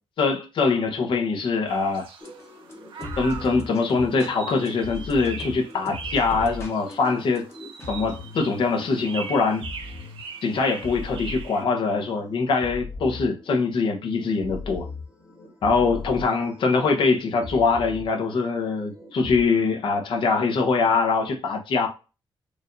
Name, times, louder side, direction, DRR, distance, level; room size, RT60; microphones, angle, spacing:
voice 1, 0.2-2.1 3.2-7.5 7.9-9.7 10.4-14.9 15.6-21.9, left 4 dB, 75° left, 0.9 m, -23 dB
sound 1, 1.7-11.6, right 5 dB, 90° right, 0.8 m, -41 dB
sound 2, 2.2-19.4, left 3 dB, 30° left, 0.9 m, -39 dB
4.8 x 2.6 x 2.5 m
wide cardioid pair, 150°, 9 cm